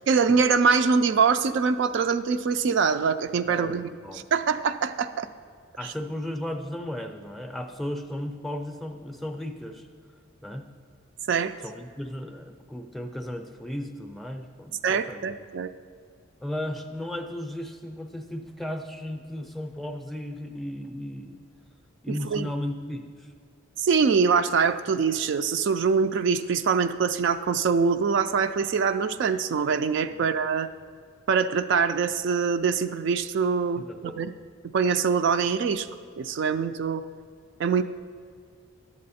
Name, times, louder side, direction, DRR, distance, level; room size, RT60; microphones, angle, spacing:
voice 1, 0.1-5.3 5.8-5.9 11.3-11.5 14.8-15.7 22.1-22.5 23.8-30.7 31.3-34.3 34.7-35.9 36.2-37.0 37.6-37.8, right 5 dB, 60° right, 9 dB, 0.3 m, -24 dB
voice 2, 3.4-4.3 5.8-9.9 10.4-10.7 11.6-15.2 16.4-21.4 22.0-23.3 30.1-30.3 33.8-34.2, left 1 dB, ahead, 5 dB, 0.5 m, -35 dB
11.0 x 7.5 x 4.2 m, 2.1 s
head